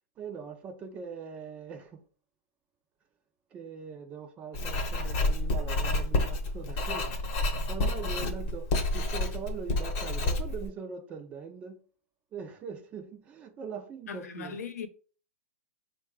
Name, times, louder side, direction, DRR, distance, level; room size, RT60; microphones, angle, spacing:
voice 1, 0.2-2.0 3.5-7.1 7.5-11.8 12.3-14.6, right 6 dB, 15° right, 0.5 m, -41 dB
Writing, 4.5-10.7, left 2 dB, 30° left, 0.9 m, -29 dB
voice 2, 14.1-14.9, left 6 dB, 80° left, 0.8 m, -38 dB
4.7 x 2.2 x 4.8 m
hypercardioid pair, 160°, 8 cm